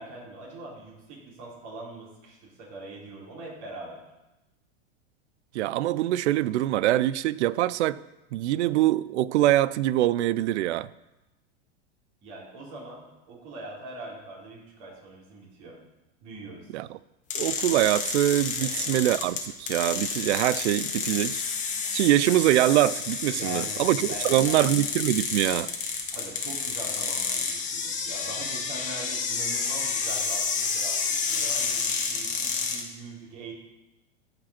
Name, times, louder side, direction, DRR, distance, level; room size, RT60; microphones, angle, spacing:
voice 1, 0.0-4.0 12.2-15.8 16.2-16.7 18.6-19.0 23.3-24.7 26.1-33.5, right 2 dB, 45° right, 3.8 m, -42 dB
voice 2, 5.5-8.0 8.3-10.9 16.7-17.0 17.3-21.4 21.9-25.7, right 14 dB, 80° right, 0.5 m, -24 dB
sound 1, 17.3-32.8, left 5 dB, 20° left, 1.3 m, -30 dB
14.5 x 5.2 x 4.3 m
supercardioid pair, 140°, 34 cm